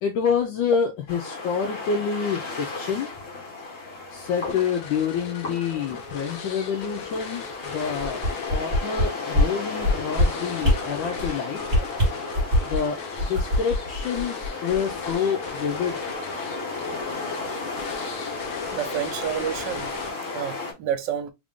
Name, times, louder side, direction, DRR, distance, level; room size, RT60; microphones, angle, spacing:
voice 1, 0.0-3.1 4.1-8.2 8.5-11.6 12.6-16.0, left 6 dB, 80° left, 1.3 m, -27 dB
sound 1, 1.1-20.7, left 3 dB, 45° left, 1.6 m, -34 dB
sound 2, 4.5-20.4, left 5 dB, 65° left, 1.0 m, -38 dB
sound 3, 8.0-9.0 9.3-9.5 9.8-10.2 10.6-10.8 11.1-11.3 11.7-12.8 13.2-14.8 15.1-15.2, left 1 dB, 40° right, 1.3 m, -22 dB
voice 2, 18.7-19.9 20.3-21.3, right 9 dB, 75° right, 1.2 m, -29 dB
3.4 x 2.6 x 3.5 m
omnidirectional pair, 2.1 m